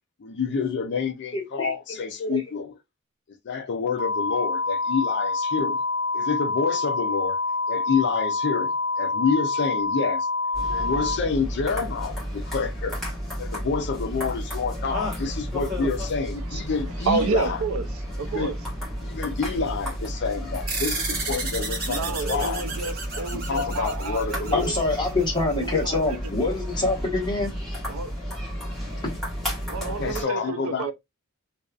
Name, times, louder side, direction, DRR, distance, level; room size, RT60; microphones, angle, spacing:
voice 1, 0.2-2.7 3.4-5.8 6.1-7.4 7.7-10.3 10.7-13.0 13.4-17.6 18.3-18.5 19.0-22.6 23.1-24.7 29.8-30.9, left 5 dB, 55° left, 0.4 m, -28 dB
voice 2, 1.3-1.7 2.2-2.4 24.5-27.6 29.0-29.2, left 2 dB, 20° left, 1.2 m, -25 dB
sound 1, 4.0-11.2, left 3 dB, 20° right, 0.8 m, -26 dB
sound 2, 10.5-30.2, equal, ahead, 1.3 m, -32 dB
voice 3, 17.0-17.9 18.2-18.6 21.9-24.7 25.6-26.2 27.9-28.1 29.7-30.9, right 4 dB, 70° right, 0.4 m, -30 dB
sound 3, 20.7-25.5, right 3 dB, 45° right, 1.0 m, -33 dB
2.6 x 2.3 x 2.3 m
head